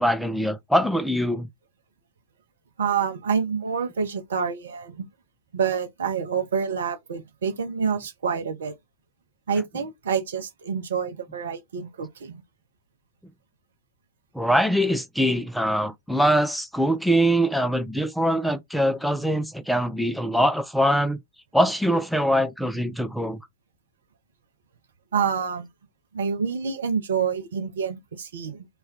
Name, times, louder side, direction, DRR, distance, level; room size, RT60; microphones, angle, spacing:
voice 1, 0.0-1.5 14.3-21.2 21.5-23.4, equal, ahead, 0.4 m, -23 dB
voice 2, 2.8-5.0 5.5-8.7 9.5-12.4 25.1-25.7 26.1-28.7, right 6 dB, 65° right, 0.6 m, -27 dB
2.4 x 2.2 x 3.5 m
figure-of-eight pair, 90°, 0 cm